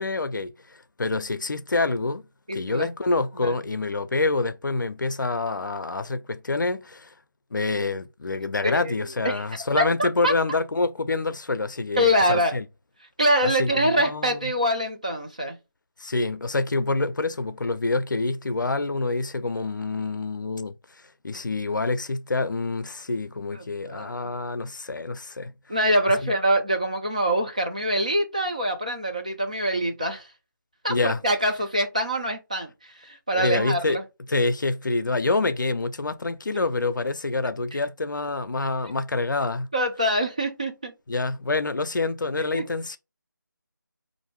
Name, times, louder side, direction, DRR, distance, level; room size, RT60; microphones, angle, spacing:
voice 1, 0.0-2.2 2.5-7.1 7.5-12.6 13.4-14.5 16.0-20.8 21.2-25.5 26.2-26.3 30.9-31.2 33.3-34.0 34.3-39.7 41.1-43.0, left 3 dB, 65° left, 0.5 m, -27 dB
voice 2, 2.5-2.9 3.3-3.6 8.6-9.4 9.8-10.3 12.0-12.5 13.2-15.6 23.5-24.2 25.7-30.3 30.8-34.0 37.7-37.8 38.8-38.9 39.7-40.9 42.5-42.7, equal, 20° right, 0.4 m, -25 dB
4.6 x 2.6 x 3.0 m
figure-of-eight pair, 165°, 11 cm